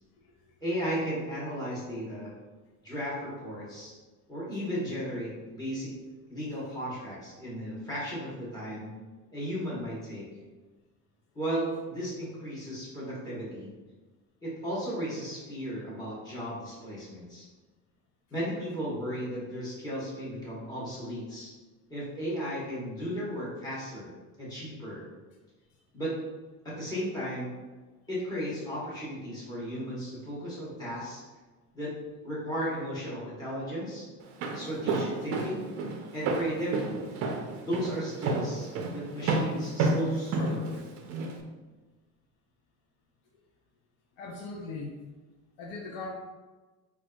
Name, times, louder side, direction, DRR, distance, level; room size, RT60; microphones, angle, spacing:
voice 1, 0.6-2.3 2.8-3.9 4.3-5.9 6.3-8.9 9.3-10.3 11.3-13.7 14.4-17.5 18.3-21.5 21.9-25.1 25.9-26.1 26.6-27.5 28.1-31.2 31.7-31.9 32.2-34.1 34.5-35.6 36.1-37.0 37.6-40.9, equal, 10° left, -7 dB, 1.0 m, -35 dB
Walk footsteps, 34.2-41.4, right 3 dB, 50° right, 0.4 m, -30 dB
voice 2, 44.2-45.0 45.6-46.1, left 3 dB, 85° left, -1 dB, 0.6 m, -39 dB
4.3 x 2.3 x 2.2 m, 1.3 s
cardioid pair, 165°, 32 cm